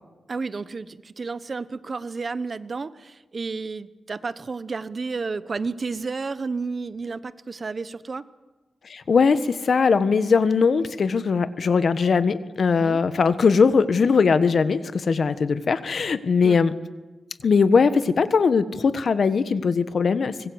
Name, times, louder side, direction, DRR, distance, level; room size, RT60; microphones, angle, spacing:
voice 1, 0.3-8.2 12.8-13.0 16.4-16.6, right 4 dB, 45° right, 15 dB, 1.0 m, -31 dB
voice 2, 8.9-16.7 17.4-20.3, left 5 dB, 65° left, 13 dB, 1.3 m, -20 dB
25.0 x 21.0 x 8.0 m, 1.2 s
wide cardioid pair, 110°, 0 cm